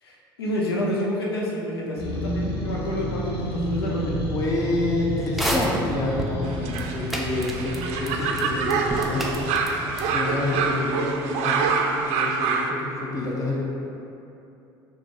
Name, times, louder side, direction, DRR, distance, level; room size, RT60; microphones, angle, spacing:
voice 1, 0.0-4.2, left 1 dB, 85° left, -3 dB, 0.7 m, -29 dB
sound 1, 2.0-10.5, equal, 50° left, 1.1 m, -31 dB
voice 2, 4.3-9.8 10.1-13.6, left 2 dB, 30° left, -4 dB, 0.8 m, -29 dB
sound 2, 5.3-6.3 6.7-6.8 7.1-8.1 8.3-8.4 8.7-9.7 10.0-10.1, equal, ahead, 0.5 m, -27 dB
sound 3, 6.4-12.7, right 5 dB, 60° right, 0.4 m, -26 dB
5.9 x 2.3 x 2.9 m, 2.8 s
hypercardioid pair, 65°, 12 cm